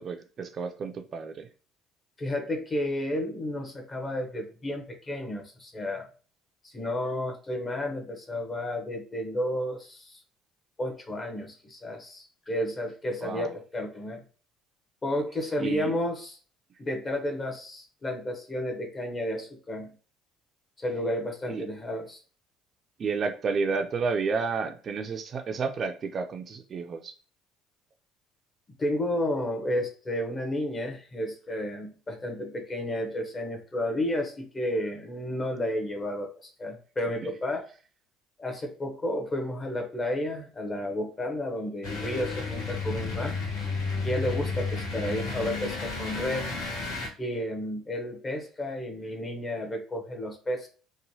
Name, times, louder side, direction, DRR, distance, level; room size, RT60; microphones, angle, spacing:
voice 1, 0.0-1.5 13.2-13.5 15.6-15.9 21.5-21.6 23.0-27.1, right 5 dB, 40° right, 6 dB, 0.3 m, -31 dB
voice 2, 2.2-6.1 6.6-10.2 10.8-14.2 15.0-16.4 16.8-19.9 20.8-22.2 28.8-37.7 38.4-43.4 44.0-46.5 47.2-50.7, left 1 dB, 25° left, 3 dB, 0.7 m, -32 dB
sound 1, 41.8-47.1, left 4 dB, 90° left, 1.0 m, -32 dB
3.0 x 2.1 x 2.7 m, 0.38 s
cardioid pair, 110°, 0 cm